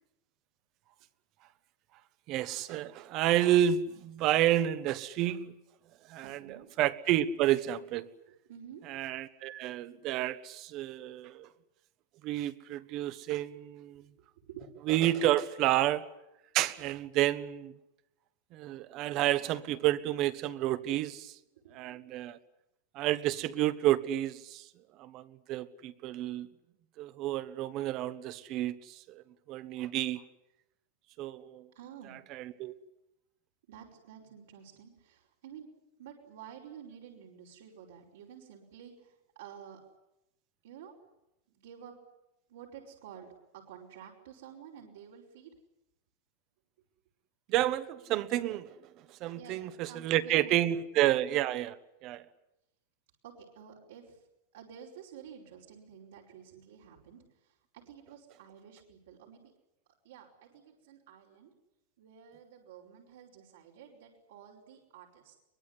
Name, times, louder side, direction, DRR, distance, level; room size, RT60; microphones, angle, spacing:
voice 1, 2.3-5.5 6.1-8.1 8.9-11.5 12.2-14.0 14.9-16.0 16.5-17.7 18.5-21.3 21.7-22.4 22.9-24.6 25.0-26.5 27.0-30.2 31.2-31.7 32.1-32.7 47.5-48.8 49.2-51.8 52.0-52.2, right 13 dB, 35° right, 1.2 m, -30 dB
voice 2, 6.2-6.7 8.5-8.8 14.0-14.1 14.5-14.7 21.6-22.5 31.7-32.2 33.7-35.7 36.0-39.8 40.6-40.9 41.5-42.0 42.5-43.3 43.5-45.5 49.3-51.2 53.2-54.2 54.5-59.4 60.0-61.5 62.0-65.4, right 8 dB, 75° right, 5.0 m, -51 dB
23.5 x 21.5 x 9.8 m
supercardioid pair, 170°, 0 cm